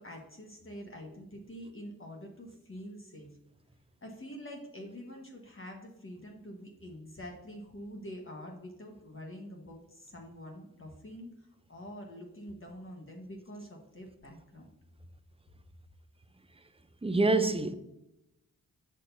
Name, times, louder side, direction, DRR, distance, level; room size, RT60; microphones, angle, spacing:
voice 1, 0.0-3.3 4.0-11.3 11.7-14.7, equal, 35° left, 1.5 m, -46 dB
voice 2, 17.0-17.7, right 2 dB, 15° right, 0.7 m, -26 dB
6.2 x 6.1 x 2.8 m
cardioid pair, 50°, 36 cm